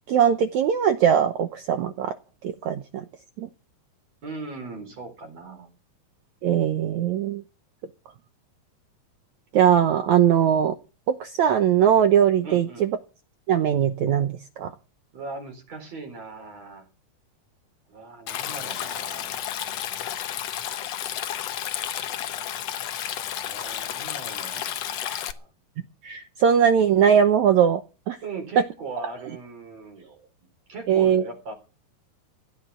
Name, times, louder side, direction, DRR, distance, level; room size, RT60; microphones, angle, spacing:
voice 1, 0.1-2.1 2.4-3.0 3.4-3.5 6.4-7.4 9.5-10.7 11.2-12.9 13.5-14.7 25.1-25.2 26.0-27.8 28.1-28.2 30.9-31.2, right 8 dB, 75° right, 9 dB, 1.7 m, -20 dB
voice 2, 4.2-5.7 12.4-12.9 15.1-16.9 17.9-19.4 23.4-25.5 28.2-30.3 30.7-31.5, right 3 dB, 45° right, 5 dB, 5.3 m, -39 dB
Stream, 18.3-25.3, left 11 dB, 85° left, 1.4 m, -32 dB
16.5 x 12.0 x 5.9 m, 0.34 s
omnidirectional pair, 4.5 m